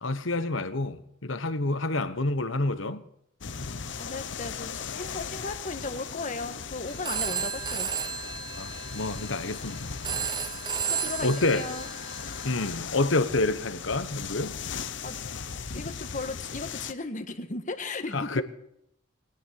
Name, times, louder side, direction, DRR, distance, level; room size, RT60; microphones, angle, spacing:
voice 1, 0.0-3.0 8.6-9.8 10.2-10.4 11.2-11.7 12.4-14.6 18.1-18.4, left 2 dB, 80° left, 1.3 m, -28 dB
sound 1, 3.4-16.9, left 6 dB, 65° left, 0.9 m, -38 dB
voice 2, 4.0-7.9 10.9-11.9 15.0-15.2 15.7-18.4, left 3 dB, 40° left, 1.6 m, -36 dB
Telephone, 6.9-12.8, right 6 dB, 20° right, 0.8 m, -34 dB
21.0 x 10.0 x 6.5 m
head